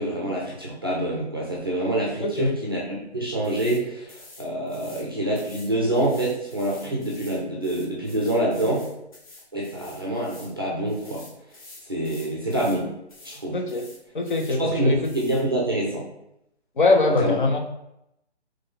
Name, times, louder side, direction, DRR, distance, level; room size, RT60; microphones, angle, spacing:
voice 1, 0.0-8.9 9.5-11.2 11.9-12.9 13.2-13.6 14.6-16.0 17.1-17.3, right 1 dB, 20° right, -4 dB, 0.5 m, -26 dB
voice 2, 2.2-2.5 13.5-13.9 14.1-15.1 16.8-17.6, left 3 dB, 45° left, 3 dB, 0.7 m, -22 dB
sound 1, 3.4-3.8 4.1-5.1 5.3-10.5 10.9-12.8 13.1-13.4 13.7-14.6 15.0-15.4, left 2 dB, 30° left, 1.2 m, -47 dB
3.8 x 3.2 x 3.8 m, 0.83 s
hypercardioid pair, 170°, 34 cm